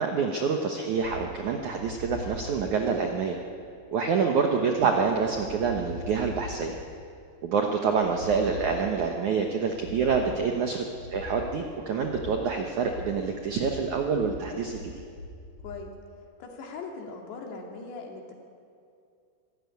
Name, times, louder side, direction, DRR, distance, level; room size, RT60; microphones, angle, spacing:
voice 1, 0.0-3.4 3.9-6.8 7.4-10.8 11.1-14.9, right 5 dB, 70° right, 3 dB, 1.8 m, -27 dB
sound 1, 1.0-15.9, left 2 dB, 45° left, 2.8 m, -42 dB
voice 2, 10.3-10.6 15.6-15.9 16.4-18.3, left 4 dB, 70° left, 1 dB, 4.5 m, -40 dB
24.5 x 14.0 x 9.5 m, 2.4 s
omnidirectional pair, 5.1 m